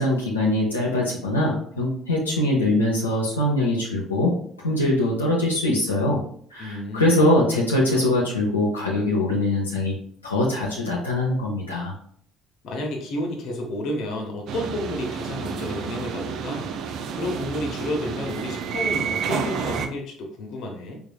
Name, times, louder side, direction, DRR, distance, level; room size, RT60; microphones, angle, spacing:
voice 1, 0.0-4.3 4.6-6.2 6.5-9.9 10.2-11.9, left 1 dB, 90° left, -4 dB, 0.7 m, -22 dB
voice 2, 6.6-7.2 12.6-16.7 17.1-21.0, left 1 dB, 60° left, 2 dB, 0.9 m, -31 dB
sound 1, 14.5-19.9, right 6 dB, 60° right, 0.4 m, -30 dB
4.6 x 3.5 x 2.3 m, 0.62 s
figure-of-eight pair, 55°, 0 cm